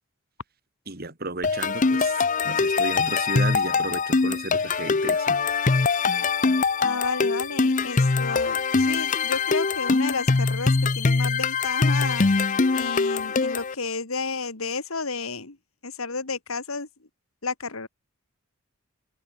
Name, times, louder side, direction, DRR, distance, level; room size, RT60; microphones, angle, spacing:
voice 1, 0.9-5.4, right 2 dB, 45° right, 3.2 m, -33 dB
sound 1, 1.4-13.7, left 4 dB, 40° left, 0.6 m, -23 dB
voice 2, 6.8-12.3 12.7-15.6 15.8-16.9 17.4-17.9, left 4 dB, 90° left, 2.5 m, -32 dB
open air
head